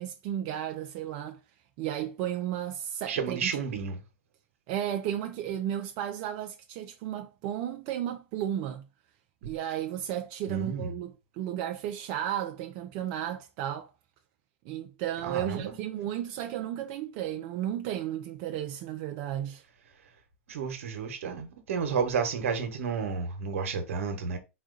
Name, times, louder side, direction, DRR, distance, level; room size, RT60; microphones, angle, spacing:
voice 1, 0.0-1.4 1.8-3.5 4.7-8.8 9.4-13.9 14.6-19.6, right 11 dB, 50° right, 0.5 m, -33 dB
voice 2, 3.1-4.0 10.5-10.9 15.2-15.8 20.5-24.4, right 5 dB, 80° right, 1.1 m, -31 dB
4.2 x 2.4 x 3.8 m
hypercardioid pair, 115°, 7 cm